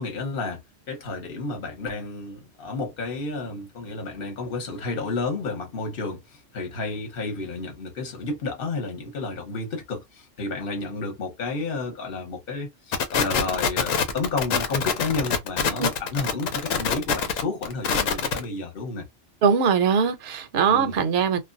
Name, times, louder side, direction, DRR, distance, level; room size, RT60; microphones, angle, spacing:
voice 1, 0.0-19.0 20.7-21.0, left 3 dB, 50° left, 1.1 m, -31 dB
sound 1, 12.9-18.4, left 6 dB, 85° left, 1.1 m, -24 dB
voice 2, 19.4-21.4, right 6 dB, 60° right, 0.8 m, -21 dB
2.5 x 2.2 x 2.5 m
omnidirectional pair, 1.3 m